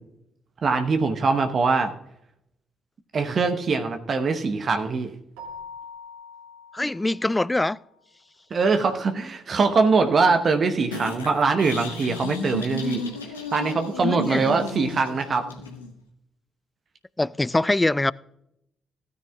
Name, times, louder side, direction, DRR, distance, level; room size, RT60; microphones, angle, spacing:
voice 1, 0.6-1.9 3.1-5.2 8.5-13.0 13.5-15.5, right 4 dB, 45° right, 0.9 m, -22 dB
Keyboard (musical), 5.4-7.8, left 3 dB, 70° right, 2.4 m, -43 dB
voice 2, 6.7-7.8 14.0-14.5 17.2-18.1, left 2 dB, 15° left, 0.3 m, -23 dB
sound 1, 10.9-15.9, left 2 dB, 85° left, 1.2 m, -33 dB
16.5 x 9.5 x 2.3 m
figure-of-eight pair, 40°, 0 cm